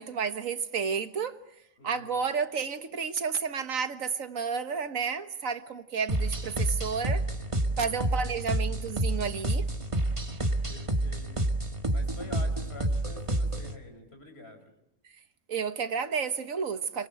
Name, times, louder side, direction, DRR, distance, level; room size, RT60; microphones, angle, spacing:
voice 1, 0.0-1.4 1.8-7.2 7.8-9.7 15.5-17.1, right 6 dB, 90° right, 1.7 m, -31 dB
sound 1, 6.1-13.8, right 1 dB, 25° right, 1.7 m, -29 dB
voice 2, 7.6-8.0 10.7-11.5 11.9-14.7, left 2 dB, 50° left, 5.2 m, -47 dB
29.5 x 24.5 x 7.9 m
omnidirectional pair, 1.4 m